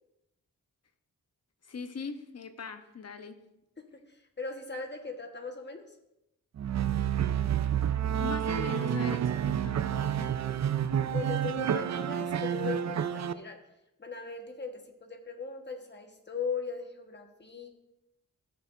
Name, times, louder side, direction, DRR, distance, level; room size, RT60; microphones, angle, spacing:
voice 1, 1.6-3.4 8.2-10.3, left 5 dB, 50° left, 8 dB, 0.9 m, -41 dB
voice 2, 4.4-5.8 11.1-13.6 14.0-17.7, left 4 dB, 30° left, 4 dB, 1.3 m, -38 dB
sound 1, 6.6-13.3, right 9 dB, 55° right, 0.4 m, -29 dB
16.5 x 6.8 x 2.6 m, 0.89 s
wide cardioid pair, 95°, 33 cm